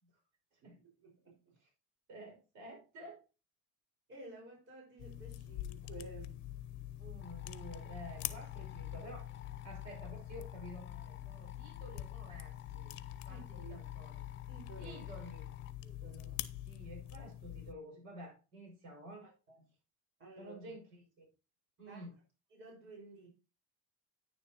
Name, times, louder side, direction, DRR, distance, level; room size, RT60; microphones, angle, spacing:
voice 1, 1.0-1.4 4.1-6.6 13.3-13.8 14.5-15.1 15.8-16.4 19.2-19.6 20.2-20.7 21.8-22.0 22.5-23.3, right 2 dB, 40° right, 5.1 m, -53 dB
voice 2, 2.1-3.2 7.0-12.9 13.2-14.2 14.8-15.5 16.6-19.2 20.4-21.3 21.8-22.1, right 1 dB, 65° right, 5.7 m, -51 dB
sound 1, 5.0-17.7, left 13 dB, 60° left, 0.8 m, -45 dB
sound 2, 7.2-15.7, left 12 dB, 35° left, 1.0 m, -57 dB
10.0 x 9.8 x 2.9 m
cardioid pair, 145°, 32 cm